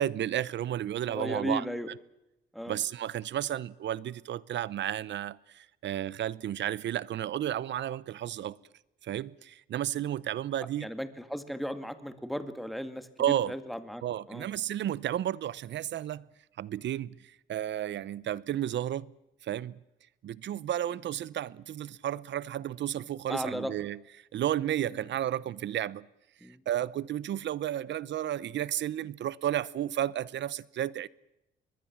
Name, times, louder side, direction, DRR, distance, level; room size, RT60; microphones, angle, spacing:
voice 1, 0.0-1.6 2.7-8.6 9.0-10.9 13.2-13.5 14.0-16.3 16.6-19.1 19.4-19.8 20.2-26.1 26.7-31.1, right 11 dB, 65° right, 0.8 m, -32 dB
voice 2, 1.1-1.9 2.5-2.8 10.8-14.0 14.3-14.5 23.3-23.7 26.4-26.6, equal, ahead, 2.1 m, -36 dB
25.0 x 21.0 x 7.4 m
cardioid pair, 90°, 20 cm